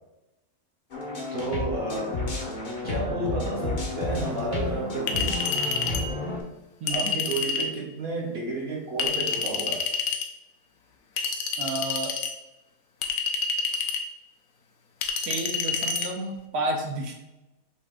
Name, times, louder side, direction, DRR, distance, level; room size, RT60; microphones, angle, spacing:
sound 1, 0.9-6.4, left 2 dB, 40° left, 0.7 m, -31 dB
voice 1, 1.3-2.2 2.8-5.4 6.9-9.8, right 2 dB, 45° right, -2 dB, 1.0 m, -31 dB
Chink clink, 5.1-6.1 6.9-7.7 9.0-10.3 11.2-12.3 13.0-14.1 15.0-16.1, left 5 dB, 70° left, 1.0 m, -28 dB
voice 2, 6.8-7.1 11.6-12.1 15.3-17.1, right 2 dB, 75° right, 2 dB, 1.3 m, -31 dB
5.9 x 2.5 x 3.6 m, 0.97 s
omnidirectional pair, 1.6 m